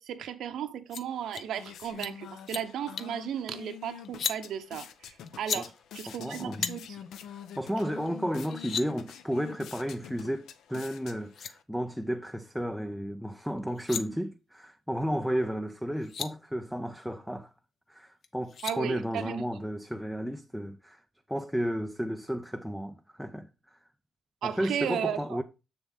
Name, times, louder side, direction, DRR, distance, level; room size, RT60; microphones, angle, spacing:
voice 1, 0.0-7.0 18.6-19.4 24.4-25.2, right 9 dB, 75° right, 0.9 m, -35 dB
sound 1, 0.9-1.0 1.3-1.5 1.8-2.1 2.4-2.6 3.0-3.2 4.0-4.4 5.3-5.6 6.6-6.7 8.1-8.2 8.4-8.9 10.9-11.0 11.3-11.5 13.6-14.0 15.7-15.8 16.0-16.3 18.2-18.8, left 7 dB, 45° left, 0.6 m, -34 dB
sound 2, 1.1-11.6, left 9 dB, 80° left, 0.9 m, -47 dB
voice 2, 6.1-6.7 7.6-17.5 17.9-21.0 21.3-23.8 24.4-25.4, equal, ahead, 0.4 m, -33 dB
7.1 x 7.0 x 3.6 m
cardioid pair, 175°, 0 cm